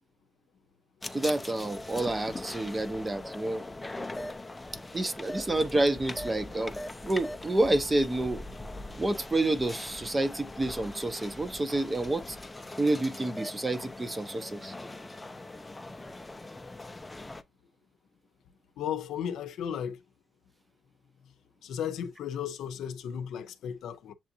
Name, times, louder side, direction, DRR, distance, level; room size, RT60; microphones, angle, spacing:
sound 1, 1.0-17.4, left 2 dB, 15° left, 0.6 m, -41 dB
voice 1, 1.1-3.7 4.9-6.7 7.0-8.4 9.0-12.4 12.8-14.7, right 2 dB, 20° right, 0.7 m, -29 dB
voice 2, 18.8-20.0 21.6-24.1, left 8 dB, 75° left, 0.6 m, -35 dB
7.4 x 2.5 x 2.7 m
cardioid pair, 90°, 0 cm